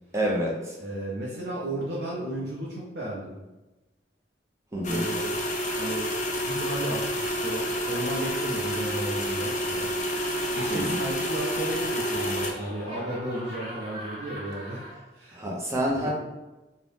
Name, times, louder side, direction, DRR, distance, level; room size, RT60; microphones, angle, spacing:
voice 1, 0.1-0.8 4.7-5.0 10.7-11.0 15.3-16.1, equal, 15° right, -4 dB, 0.4 m, -28 dB
voice 2, 0.8-3.4 4.7-5.3 5.8-6.1 6.4-9.9 10.5-14.8 15.1-15.4 15.9-16.1, right 1 dB, 65° right, -5 dB, 0.5 m, -34 dB
sound 1, 4.8-12.5, equal, 45° left, 0.4 m, -29 dB
Laughter, 10.2-15.0, equal, 60° left, 1.2 m, -41 dB
2.7 x 2.0 x 3.2 m, 1.1 s
head